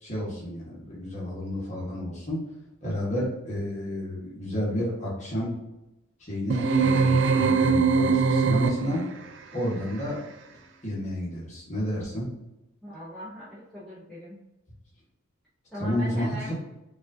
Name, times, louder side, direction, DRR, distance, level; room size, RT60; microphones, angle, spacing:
voice 1, 0.0-2.4 2.8-5.5 6.2-9.0 9.5-10.2 10.8-12.3 15.8-16.5, left 1 dB, 30° left, -6 dB, 1.2 m, -31 dB
sound 1, 6.5-9.1, right 5 dB, 55° right, 0.4 m, -22 dB
voice 2, 12.8-14.4 15.7-16.5, equal, ahead, -11 dB, 0.7 m, -39 dB
4.7 x 2.5 x 2.6 m, 0.95 s
head